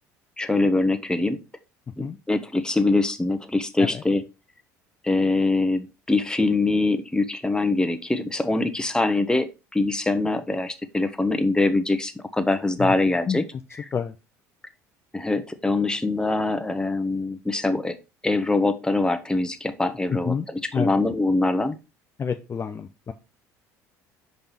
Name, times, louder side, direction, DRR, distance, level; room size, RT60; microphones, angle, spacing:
voice 1, 0.4-1.4 2.0-4.2 5.0-13.4 15.1-18.0 18.2-20.3 20.8-21.8, left 2 dB, 10° left, 8 dB, 1.1 m, -23 dB
voice 2, 20.1-20.5 20.7-21.0 22.2-23.1, left 6 dB, 30° left, 7 dB, 0.6 m, -28 dB
5.3 x 5.3 x 4.5 m, 0.28 s
hypercardioid pair, 65°, 8 cm